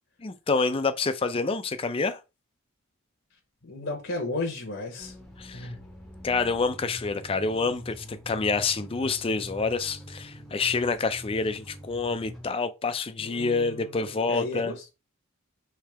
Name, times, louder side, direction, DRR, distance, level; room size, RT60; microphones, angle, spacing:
voice 1, 0.2-2.2 5.4-5.7 6.2-14.7, left 4 dB, 25° left, 0.4 m, -27 dB
voice 2, 3.6-5.2 5.5-5.8 13.2-14.9, left 2 dB, 55° left, 0.8 m, -34 dB
sound 1, 5.0-12.5, equal, ahead, 0.8 m, -45 dB
3.4 x 3.2 x 4.6 m
head